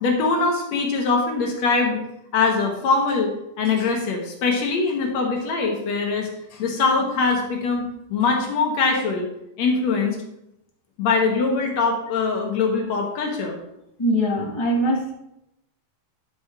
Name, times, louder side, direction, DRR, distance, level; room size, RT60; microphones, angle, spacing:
voice 1, 0.0-2.0 2.3-3.3 3.6-9.3 9.6-10.2 11.0-13.6, left 4 dB, 65° left, 2 dB, 2.3 m, -22 dB
voice 2, 14.0-15.1, equal, 20° left, -2 dB, 0.7 m, -22 dB
11.0 x 5.2 x 4.7 m, 0.84 s
omnidirectional pair, 3.6 m